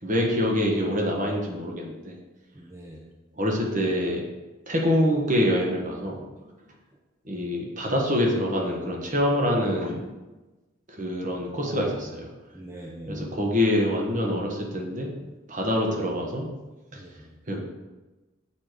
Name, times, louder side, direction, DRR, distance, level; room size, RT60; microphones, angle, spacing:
voice 1, 0.0-2.2 3.4-4.2 4.7-6.2 7.2-10.1 10.9-12.3 13.1-15.1 15.5-16.5 16.9-17.0 17.5-17.6, equal, 40° right, 0 dB, 1.3 m, -25 dB
voice 2, 2.5-3.1 11.6-12.2 12.5-13.4 16.9-17.4, equal, 15° right, -3 dB, 0.7 m, -41 dB
7.2 x 5.0 x 4.5 m, 1.2 s
head